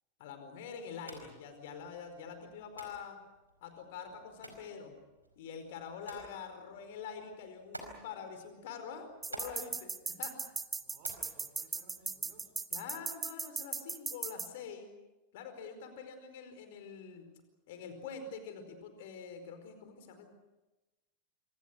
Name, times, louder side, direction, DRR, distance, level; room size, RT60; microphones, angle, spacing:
voice 1, 0.2-3.2 3.6-5.0 5.4-10.4 12.7-14.9 15.3-17.3 17.7-20.3, left 6 dB, 55° left, 8 dB, 4.7 m, -45 dB
sound 1, 0.9-12.4, right 1 dB, 85° right, 4.8 m, -53 dB
sound 2, 9.2-14.5, right 4 dB, 15° right, 1.1 m, -37 dB
voice 2, 10.8-12.5, right 4 dB, 45° right, 8 dB, 5.1 m, -60 dB
26.5 x 26.0 x 6.4 m, 1.1 s
figure-of-eight pair, 90°, 0 cm